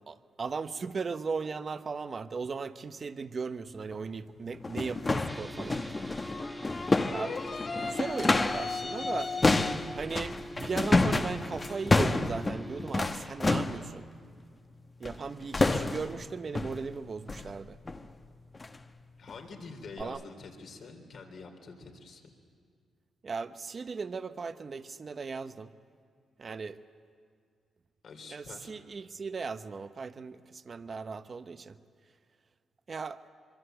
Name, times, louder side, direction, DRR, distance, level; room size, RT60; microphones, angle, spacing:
voice 1, 0.0-5.8 7.1-7.4 7.7-9.3 9.9-14.1 15.0-17.8 20.0-20.2 23.2-25.7 26.4-26.8 28.3-31.8 32.9-33.2, right 5 dB, 45° right, 11 dB, 0.9 m, -37 dB
sound 1, 3.9-4.0 4.5-8.8 9.0-13.9 15.0-15.3 15.5-16.2 16.5-16.8 17.3-17.5 17.9-18.1 18.5-18.8 19.3-19.4 20.0-20.1, left 2 dB, 30° left, 1.1 m, -29 dB
sound 2, 5.3-12.9, right 1 dB, 10° right, 1.4 m, -45 dB
sound 3, 6.2-10.0, left 4 dB, 45° left, 2.6 m, -37 dB
voice 2, 19.2-22.2 28.0-28.7, left 4 dB, 65° left, 4 dB, 3.5 m, -46 dB
24.5 x 23.5 x 7.9 m, 2.1 s
cardioid pair, 80°, 0 cm